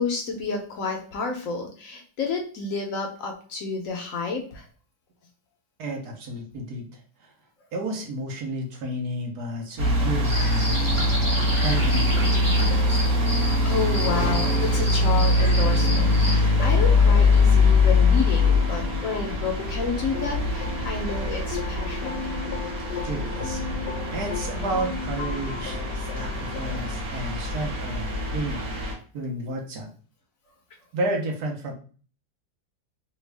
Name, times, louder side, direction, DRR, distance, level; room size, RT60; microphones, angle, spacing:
voice 1, 0.0-4.6 13.6-22.2 26.2-26.3, left 4 dB, 65° left, 2 dB, 0.9 m, -30 dB
voice 2, 5.8-7.3 7.7-11.1 11.6-13.0 23.0-23.8 24.1-28.7 29.1-29.9 30.9-31.7, right 1 dB, 70° right, 1 dB, 1.3 m, -32 dB
sound 1, 9.8-28.9, left 2 dB, 50° right, 1.3 m, -23 dB
sound 2, 10.2-16.3, left 1 dB, 15° right, 0.9 m, -32 dB
sound 3, 11.8-26.9, left 7 dB, 85° left, 1.2 m, -38 dB
3.4 x 2.3 x 3.2 m, 0.39 s
omnidirectional pair, 1.8 m